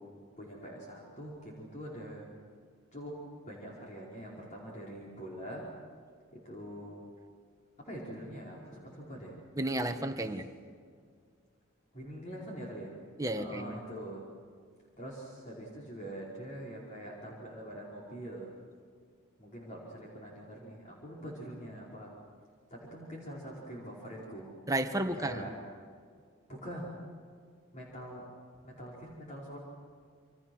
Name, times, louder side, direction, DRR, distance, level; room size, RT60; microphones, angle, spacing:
voice 1, 0.4-2.3 2.9-3.1 3.5-5.6 6.4-7.0 7.8-9.4 11.9-12.9 13.3-14.2 15.0-18.5 19.4-22.1 22.7-24.5 25.2-25.5 26.5-27.0 27.7-28.3 28.6-29.6, equal, 35° left, -4 dB, 4.9 m, -44 dB
voice 2, 9.6-10.4 13.2-13.8 24.7-25.4, right 1 dB, 15° right, 6 dB, 1.5 m, -32 dB
28.5 x 26.0 x 6.3 m, 2.1 s
head